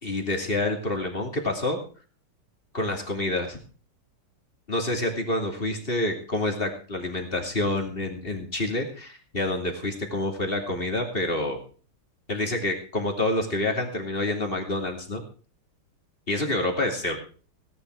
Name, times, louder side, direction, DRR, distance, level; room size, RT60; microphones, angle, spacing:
voice 1, 0.0-1.8 2.7-3.6 4.7-11.6 12.3-15.2 16.3-17.2, left 2 dB, 25° left, 2 dB, 2.8 m, -27 dB
17.5 x 10.5 x 4.7 m, 0.40 s
omnidirectional pair, 2.3 m